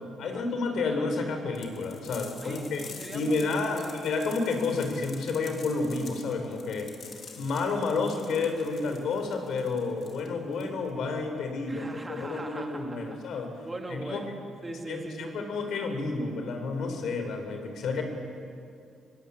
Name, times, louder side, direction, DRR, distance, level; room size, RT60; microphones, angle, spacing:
voice 1, 0.2-2.8 3.1-6.9 7.4-13.5 13.9-14.2 14.9-18.0, left 3 dB, 70° left, 5 dB, 4.1 m, -30 dB
sound 1, 1.6-10.9, left 5 dB, 55° left, 3.1 m, -48 dB
voice 2, 2.4-4.1 11.7-13.2 13.6-14.3 14.6-15.6, right 2 dB, 20° right, 2 dB, 2.9 m, -40 dB
22.0 x 18.5 x 8.6 m, 2.4 s
cardioid pair, 90°, 0 cm